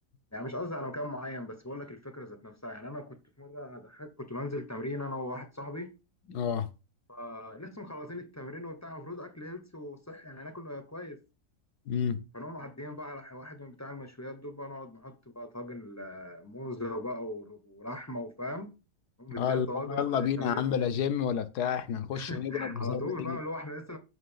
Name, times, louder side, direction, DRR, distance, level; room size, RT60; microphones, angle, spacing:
voice 1, 0.3-6.0 7.1-11.2 12.3-18.7 19.2-20.9 22.1-24.0, left 1 dB, 15° left, 0.6 m, -39 dB
voice 2, 6.3-6.7 11.9-12.2 19.4-23.4, left 8 dB, 80° left, 1.4 m, -30 dB
6.5 x 6.0 x 5.6 m
omnidirectional pair, 1.7 m